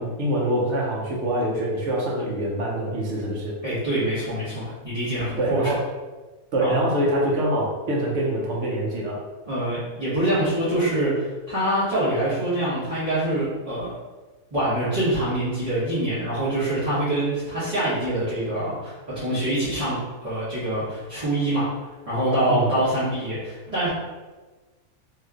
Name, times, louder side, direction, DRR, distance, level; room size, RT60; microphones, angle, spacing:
voice 1, 0.0-3.6 5.4-5.8 6.5-9.2 22.5-22.7, right 1 dB, 60° right, -3 dB, 0.9 m, -24 dB
voice 2, 3.6-5.6 6.6-6.7 9.5-13.9 14.5-21.7 22.1-23.9, right 1 dB, 25° right, -14 dB, 1.1 m, -25 dB
3.1 x 2.8 x 2.4 m, 1.2 s
omnidirectional pair, 1.6 m